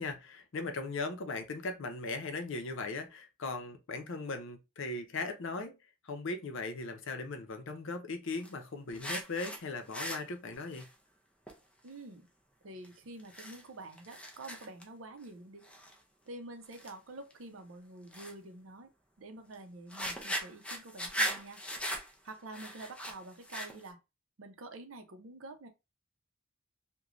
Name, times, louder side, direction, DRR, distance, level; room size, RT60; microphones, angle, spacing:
voice 1, 0.0-5.7 6.0-10.9, left 3 dB, 65° left, 0.6 m, -38 dB
sound 1, 8.4-8.5 8.9-9.6 9.9-10.9 11.5-11.6 11.9-12.0 12.8-12.9 13.2-13.6 13.9-14.8 15.2-15.3 15.6-15.9 16.7-16.9 17.3-17.4 18.1-18.3 19.5-19.6 19.9-23.9, equal, 5° left, 0.5 m, -38 dB
voice 2, 11.8-12.3 12.6-15.7 16.3-18.9 19.2-21.6 22.2-24.0 24.4-25.7, right 2 dB, 65° right, 0.6 m, -48 dB
3.0 x 2.2 x 2.4 m
head